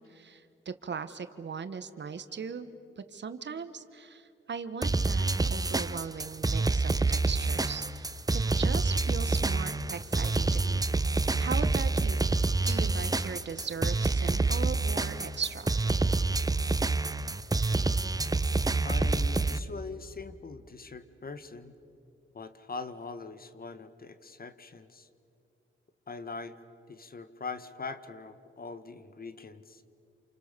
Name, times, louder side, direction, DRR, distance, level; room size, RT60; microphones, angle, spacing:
voice 1, 0.1-2.7 3.0-8.1 8.3-10.8 11.4-12.3 12.6-15.7, right 6 dB, 60° right, 11 dB, 1.4 m, -39 dB
sound 1, 4.8-19.6, right 3 dB, 15° right, 0.7 m, -27 dB
voice 2, 17.7-18.2 18.8-21.7 22.3-25.1 26.1-26.6 26.9-29.8, left 4 dB, 45° left, 11 dB, 1.5 m, -42 dB
28.5 x 28.5 x 6.9 m, 2.6 s
cardioid pair, 70°, 21 cm